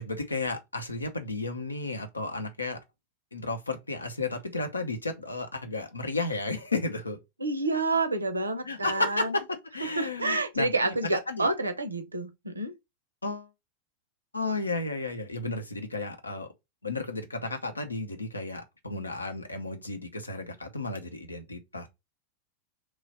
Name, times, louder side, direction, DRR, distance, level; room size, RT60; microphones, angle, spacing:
voice 1, 0.0-2.8 3.3-7.2 8.6-9.4 9.7-11.5 13.2-13.5 14.3-16.5 16.8-21.9, left 3 dB, 80° left, 0.6 m, -33 dB
voice 2, 7.4-9.3 10.0-12.7, right 3 dB, 80° right, 0.6 m, -28 dB
3.1 x 2.3 x 4.1 m
figure-of-eight pair, 90°, 0 cm